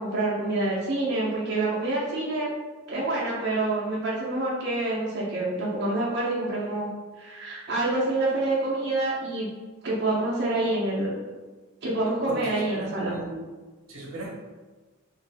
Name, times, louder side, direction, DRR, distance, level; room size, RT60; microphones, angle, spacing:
voice 1, 0.0-2.5 2.9-6.9 7.2-9.5 9.8-11.1 11.8-13.1, right 2 dB, 55° right, -7 dB, 0.6 m, -27 dB
voice 2, 12.3-13.4 13.9-14.3, right 2 dB, 80° right, -3 dB, 0.8 m, -37 dB
2.5 x 2.4 x 3.3 m, 1.3 s
head